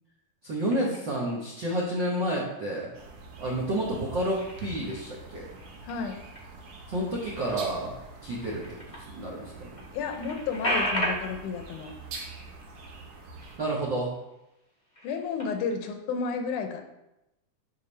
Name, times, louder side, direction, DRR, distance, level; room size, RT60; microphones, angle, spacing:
voice 1, 0.4-2.9 3.4-5.5 6.9-7.9 8.2-9.7 13.6-14.1, right 1 dB, 65° right, -4 dB, 1.1 m, -30 dB
sound 1, 0.7-1.3 1.8-2.4 2.9-3.6 3.9-9.1 9.5-9.6 9.8-13.8 14.1-14.3 14.8-15.8, equal, 25° left, 0.7 m, -36 dB
sound 2, 2.9-13.6, right 3 dB, 85° right, 2.6 m, -45 dB
voice 2, 5.8-6.2 9.9-11.9 15.0-16.8, left 5 dB, 80° left, 6 dB, 2.1 m, -32 dB
8.5 x 4.7 x 3.2 m, 0.90 s
omnidirectional pair, 3.6 m